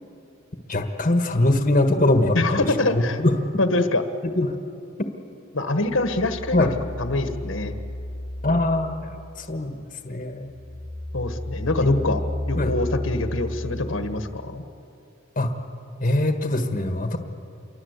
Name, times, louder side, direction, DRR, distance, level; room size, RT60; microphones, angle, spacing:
voice 1, 0.7-2.7 2.9-3.3 4.2-4.5 6.5-6.7 8.4-9.1 9.4-10.5 11.8-12.0 12.6-12.7 15.3-15.5 16.0-17.2, left 1 dB, 40° left, 6 dB, 1.5 m, -22 dB
voice 2, 2.3-3.2 3.6-4.0 5.5-6.7 7.0-7.7 11.1-12.2 12.5-14.6, left 2 dB, 75° left, 8 dB, 1.6 m, -25 dB
sound 1, 5.8-9.6 10.0-14.6, left 1 dB, 15° left, 1.0 m, -33 dB
27.5 x 23.0 x 8.2 m, 2.6 s
head